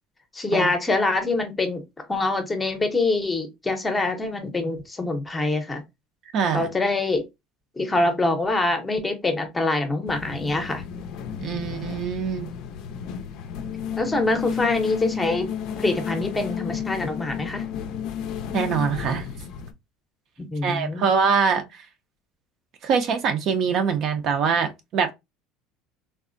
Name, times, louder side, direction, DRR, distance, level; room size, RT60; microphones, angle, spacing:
voice 1, 0.3-5.8 6.5-7.2 7.8-10.8 14.0-15.5 15.8-17.6 20.4-21.1, left 2 dB, 15° left, 0.7 m, -25 dB
voice 2, 6.3-6.7 11.4-12.5 18.5-19.3 20.6-21.9 22.8-25.1, right 6 dB, 50° right, 0.5 m, -24 dB
sound 1, 10.1-19.7, left 8 dB, 60° left, 0.4 m, -32 dB
3.4 x 2.0 x 2.5 m
cardioid pair, 140°, 0 cm